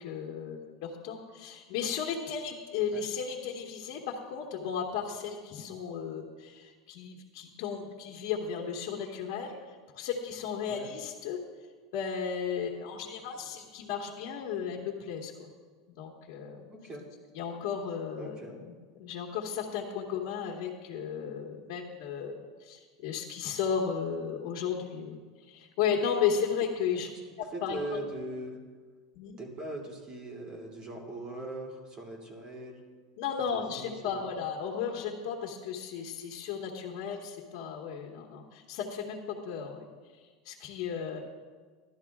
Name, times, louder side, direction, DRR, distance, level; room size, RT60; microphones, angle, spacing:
voice 1, 0.0-11.4 11.9-15.5 16.0-16.6 17.3-18.7 19.0-27.1 27.4-28.0 29.1-29.4 33.2-39.2 39.4-39.8 40.1-41.2, left 7 dB, 60° left, -1 dB, 1.5 m, -34 dB
voice 2, 16.7-17.1 18.2-18.6 27.5-28.6 29.4-32.8 33.5-34.3, right 1 dB, 30° right, 0 dB, 2.6 m, -40 dB
17.0 x 12.5 x 2.4 m, 1.5 s
supercardioid pair, 135°, 3 cm